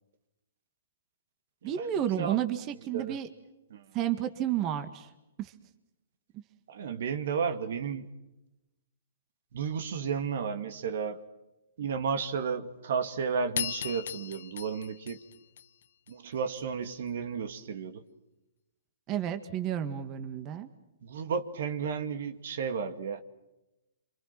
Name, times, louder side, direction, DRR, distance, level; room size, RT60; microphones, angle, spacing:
voice 1, 1.6-3.3 3.9-5.1 5.4-5.5 19.1-20.7, right 11 dB, 30° right, 9 dB, 1.9 m, -31 dB
voice 2, 6.7-8.0 9.5-11.2 11.8-15.2 16.1-18.0 21.0-23.2, right 6 dB, 65° right, 9 dB, 2.3 m, -33 dB
sound 1, 13.6-16.1, left 9 dB, 65° left, 1.1 m, -37 dB
27.5 x 26.0 x 6.0 m, 0.95 s
hypercardioid pair, 130°, 0 cm